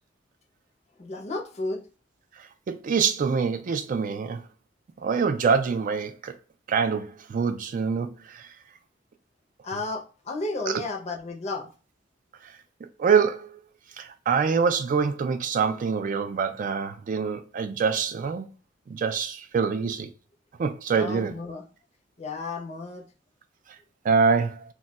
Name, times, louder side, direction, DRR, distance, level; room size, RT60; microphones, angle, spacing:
voice 1, 1.0-1.8 9.6-11.7 20.9-21.6 22.2-23.0, left 2 dB, 35° left, 0.5 m, -33 dB
voice 2, 2.4-4.4 5.0-6.3 6.7-8.5 10.7-10.8 13.0-13.6 14.0-18.5 18.9-20.1 20.6-21.4 24.0-24.6, right 5 dB, 45° right, 0.3 m, -25 dB
2.2 x 2.2 x 3.8 m
head